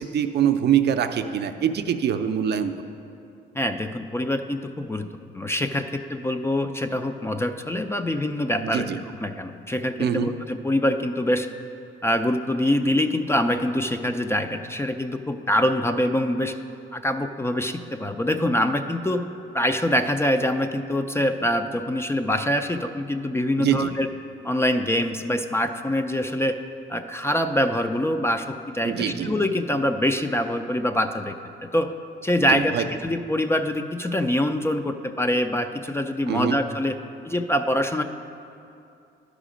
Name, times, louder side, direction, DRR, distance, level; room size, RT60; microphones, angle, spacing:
voice 1, 0.0-2.9 8.6-9.0 10.0-10.3 23.6-23.9 28.8-29.3 32.5-32.8 36.3-36.6, right 9 dB, 55° right, 8 dB, 0.5 m, -24 dB
voice 2, 3.5-11.5 12.0-16.5 16.9-19.2 19.5-24.1 24.4-26.6 26.9-31.4 31.6-31.9 32.2-37.0 37.3-38.0, left 1 dB, 15° left, 7 dB, 0.4 m, -24 dB
11.5 x 5.0 x 5.0 m, 2.6 s
cardioid pair, 90°, 20 cm